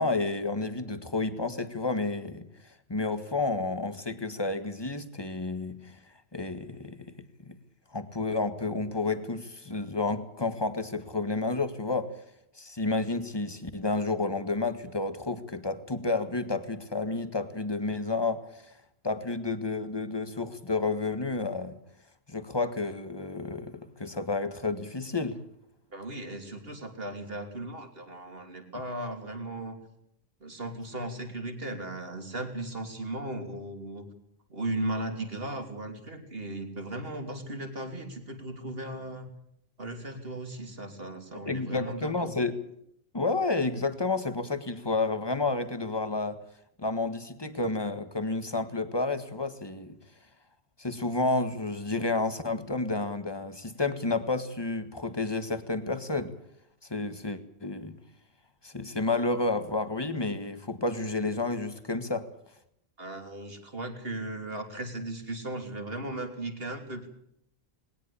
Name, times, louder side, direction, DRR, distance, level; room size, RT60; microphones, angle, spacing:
voice 1, 0.0-2.5 2.9-5.9 6.3-7.1 7.4-7.6 7.9-12.1 12.6-18.7 19.0-21.8 22.3-25.4 41.4-42.6 43.1-46.4 46.8-50.0 50.8-56.3 56.9-58.0 58.6-62.3, left 3 dB, 25° left, 1.7 m, -30 dB
voice 2, 25.9-29.8 30.4-34.1 34.5-39.3 39.8-42.3 63.0-67.1, right 1 dB, 65° right, 3.4 m, -37 dB
20.0 x 19.0 x 8.5 m
omnidirectional pair, 1.1 m